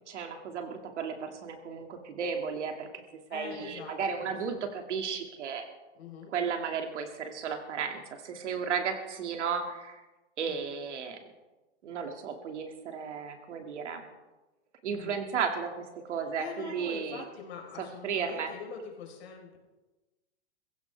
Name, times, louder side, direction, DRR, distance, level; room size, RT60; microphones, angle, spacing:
voice 1, 0.1-3.0 3.3-5.6 6.3-10.0 10.4-11.2 11.8-14.0 14.8-17.2 18.0-18.5, right 6 dB, 80° right, 4 dB, 2.5 m, -34 dB
voice 2, 3.3-4.6 5.9-6.3 10.5-10.6 14.9-15.2 16.1-19.6, left 6 dB, 60° left, 1 dB, 4.3 m, -44 dB
22.0 x 15.5 x 3.5 m, 1.1 s
supercardioid pair, 175°, 35 cm